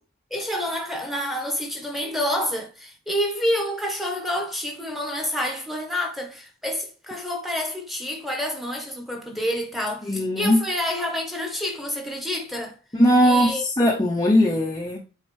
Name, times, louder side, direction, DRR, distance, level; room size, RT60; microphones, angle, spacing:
voice 1, 0.3-12.8 13.2-13.6, equal, ahead, 1.1 m, -28 dB
voice 2, 10.1-10.6 12.9-15.0, equal, 15° left, 0.7 m, -19 dB
8.6 x 3.6 x 3.2 m
head